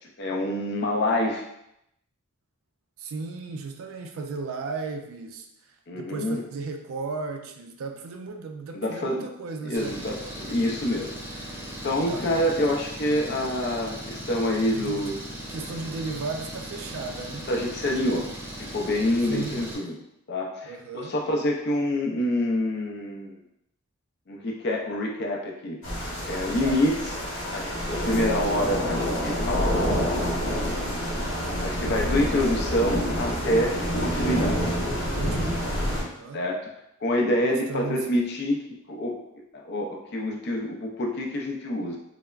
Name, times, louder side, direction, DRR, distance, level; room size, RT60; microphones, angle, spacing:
voice 1, 0.2-1.4 5.9-6.4 8.7-9.3 9.6-11.1 11.8-15.1 17.5-18.3 18.6-20.0 20.3-23.4 24.3-26.9 27.5-30.4 31.6-34.6 36.3-36.6 37.0-38.6 38.9-39.2 39.5-42.0, left 1 dB, 50° left, 0 dB, 0.4 m, -27 dB
voice 2, 3.0-5.5 5.9-10.1 12.1-12.3 14.7-15.2 15.5-17.5 19.3-19.7 20.6-21.2 26.6-26.8 35.2-36.4 37.4-38.1, right 4 dB, 75° right, 5 dB, 0.3 m, -35 dB
Engine, 9.7-19.8, equal, 10° right, 0.4 m, -38 dB
sound 1, 25.8-36.0, equal, 65° left, 0.9 m, -27 dB
3.2 x 2.0 x 2.3 m, 0.80 s
head